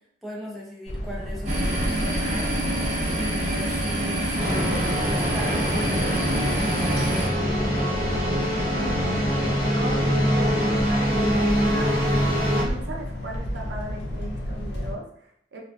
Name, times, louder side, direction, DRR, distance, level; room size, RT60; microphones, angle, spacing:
voice 1, 0.2-2.5 3.1-8.0, equal, ahead, -4 dB, 0.5 m, -37 dB
sound 1, 0.9-14.9, equal, 70° left, 0.5 m, -33 dB
sound 2, 1.5-7.3, right 1 dB, 40° right, 0.7 m, -27 dB
sound 3, 4.4-12.6, equal, 25° left, 0.9 m, -24 dB
voice 2, 8.7-12.0 12.5-15.6, right 1 dB, 85° right, 0 dB, 0.5 m, -37 dB
2.5 x 2.2 x 2.3 m, 0.70 s
head